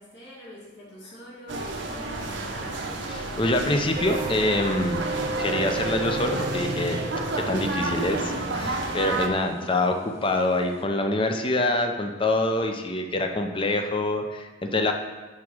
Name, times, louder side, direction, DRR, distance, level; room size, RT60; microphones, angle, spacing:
voice 1, 0.0-2.8, equal, 65° left, -8 dB, 2.3 m, -45 dB
sound 1, 1.5-9.3, right 2 dB, 75° right, 0.8 m, -30 dB
voice 2, 3.1-5.0 5.4-7.1 7.3-10.0 10.2-14.9, left 2 dB, 30° left, 5 dB, 0.6 m, -25 dB
sound 2, 3.9-10.8, right 3 dB, 35° right, 0.5 m, -36 dB
6.5 x 3.6 x 6.2 m, 1.3 s
head